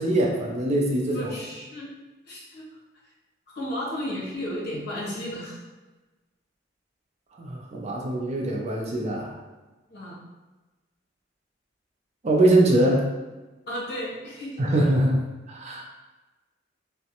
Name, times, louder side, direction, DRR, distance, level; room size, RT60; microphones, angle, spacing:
voice 1, 0.0-1.2 7.4-9.3 12.2-13.1 14.6-15.2 15.5-15.8, right 1 dB, 35° right, 0 dB, 0.4 m, -22 dB
voice 2, 1.0-1.9 2.2-2.6 3.5-5.6 9.9-10.2 13.7-14.6, equal, 60° left, -5 dB, 0.8 m, -33 dB
2.4 x 2.1 x 2.8 m, 1.2 s
head